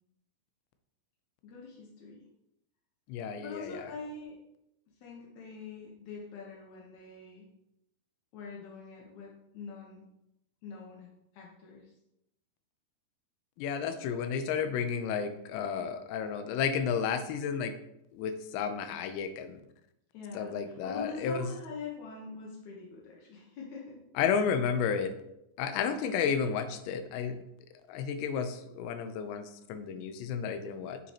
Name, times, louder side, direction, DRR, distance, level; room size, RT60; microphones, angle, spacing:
voice 1, 1.4-2.2 3.4-4.4 5.0-7.4 8.3-10.1 10.6-11.1 11.3-11.9 14.1-14.4 20.1-24.0, left 4 dB, 70° left, -2 dB, 1.8 m, -44 dB
voice 2, 3.1-3.9 13.6-17.7 18.1-19.6 20.3-21.5 24.2-25.1 25.6-27.4 27.9-31.0, left 6 dB, 90° left, 8 dB, 2.9 m, -32 dB
7.4 x 6.9 x 2.9 m, 0.84 s
omnidirectional pair, 4.9 m